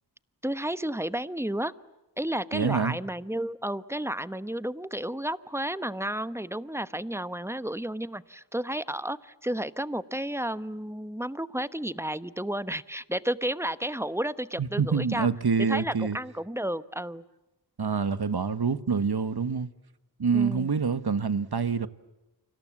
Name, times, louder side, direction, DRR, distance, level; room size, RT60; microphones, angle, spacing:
voice 1, 0.4-1.7 2.2-15.3 15.6-17.2 20.3-20.7, right 1 dB, 5° right, 1.0 m, -32 dB
voice 2, 2.5-2.9 14.6-16.2 17.8-19.7 20.2-21.9, right 5 dB, 65° right, 1.4 m, -26 dB
29.5 x 26.0 x 7.4 m
wide cardioid pair, 60°, 41 cm